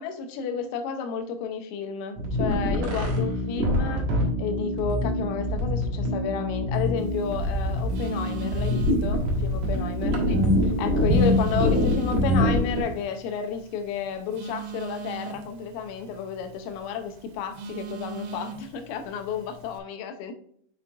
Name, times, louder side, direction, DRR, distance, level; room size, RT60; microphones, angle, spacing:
voice 1, 0.0-4.1 4.4-10.4 10.6-20.3, left 6 dB, 85° left, 7 dB, 3.3 m, -32 dB
sound 1, 2.2-12.8, left 1 dB, 65° right, 2.1 m, -24 dB
Telephone, 7.0-19.8, right 5 dB, 80° right, 3.1 m, -41 dB
6.8 x 6.0 x 2.5 m, 0.64 s
omnidirectional pair, 5.8 m